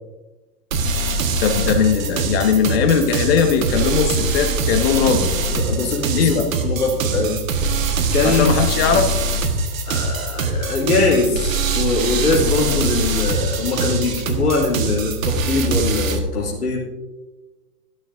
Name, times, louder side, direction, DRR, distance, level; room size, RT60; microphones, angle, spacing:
sound 1, 0.7-16.2, right 3 dB, 60° right, 1.6 m, -22 dB
voice 1, 1.4-5.3 6.2-6.5 8.2-9.1, left 6 dB, 40° left, 5 dB, 1.5 m, -19 dB
voice 2, 5.5-6.4 6.6-7.4 8.1-8.6 9.9-16.8, left 3 dB, 70° left, -4 dB, 2.8 m, -22 dB
13.0 x 12.5 x 2.6 m, 1.1 s
figure-of-eight pair, 120°, 46 cm